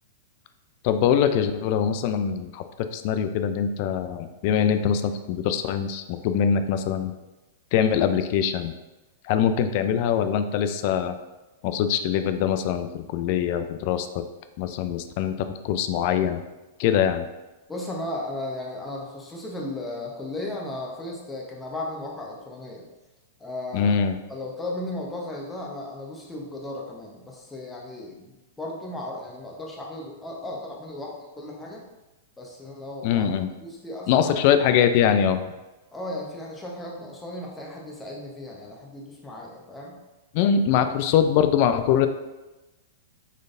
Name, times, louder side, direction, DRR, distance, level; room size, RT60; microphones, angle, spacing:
voice 1, 0.8-2.6 2.9-7.1 7.7-8.7 9.2-11.1 11.6-14.2 14.6-15.3 15.6-16.4 16.8-17.3 23.7-24.2 33.0-33.5 34.1-35.4 40.3-42.1, left 8 dB, 50° left, 9 dB, 0.3 m, -23 dB
voice 2, 17.7-22.9 23.4-23.9 24.3-31.8 32.4-33.3 33.6-34.6 35.9-40.0, left 1 dB, 10° left, -2 dB, 0.9 m, -35 dB
4.0 x 3.2 x 2.5 m, 1.1 s
hypercardioid pair, 110°, 0 cm